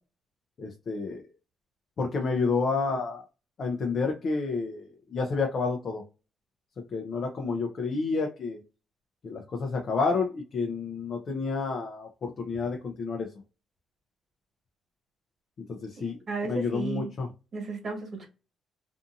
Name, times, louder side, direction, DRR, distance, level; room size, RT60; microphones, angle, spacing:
voice 1, 0.6-1.2 2.0-3.2 3.6-6.0 6.9-8.6 9.2-13.3 15.7-16.2 16.5-17.3, left 4 dB, 50° left, 0.5 m, -30 dB
voice 2, 16.0-17.1 17.5-18.3, right 3 dB, 45° right, 1.4 m, -34 dB
2.6 x 2.5 x 2.5 m
cardioid pair, 90°, 0 cm